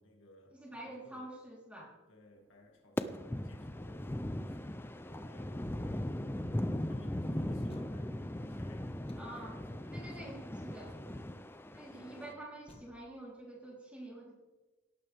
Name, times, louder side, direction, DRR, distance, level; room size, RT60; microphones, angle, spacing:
voice 1, 0.0-1.3 2.1-6.1 6.4-10.4 10.9-12.5, left 1 dB, 65° left, 1 dB, 2.2 m, -61 dB
voice 2, 0.6-1.9 9.2-9.6 9.9-11.0 11.7-14.3, right 1 dB, 5° right, -4 dB, 3.5 m, -47 dB
sound 1, 3.0-12.3, left 1 dB, 10° left, 0.4 m, -39 dB
sound 2, 7.7-8.3 9.1-9.6 10.3-10.5 10.9-11.0 12.7-12.9, left 1 dB, 30° left, 1.5 m, -58 dB
17.5 x 11.5 x 3.5 m, 1.2 s
head